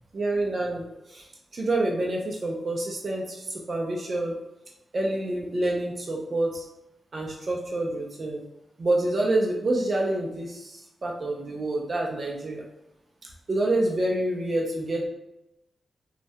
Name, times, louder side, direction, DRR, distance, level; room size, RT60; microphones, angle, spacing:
voice 1, 0.1-1.3 1.5-4.3 4.9-6.6 7.1-8.4 8.8-12.6 13.5-15.1, right 2 dB, 45° right, -1 dB, 0.3 m, -27 dB
2.3 x 2.1 x 2.6 m, 0.90 s
wide cardioid pair, 140°, 0 cm